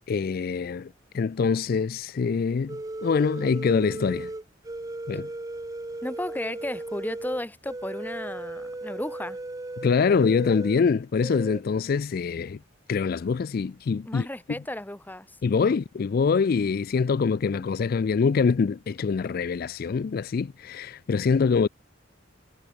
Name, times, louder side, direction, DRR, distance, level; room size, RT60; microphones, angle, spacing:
voice 1, 0.1-4.3 5.1-5.3 9.8-12.6 12.9-14.3 15.4-21.7, left 5 dB, 50° left, 0.4 m, -24 dB
sound 1, 2.7-10.8 11.2-11.6, right 2 dB, 20° right, 0.5 m, -36 dB
voice 2, 6.0-9.4 14.0-15.4 17.5-17.7, left 1 dB, 10° left, 1.2 m, -34 dB
head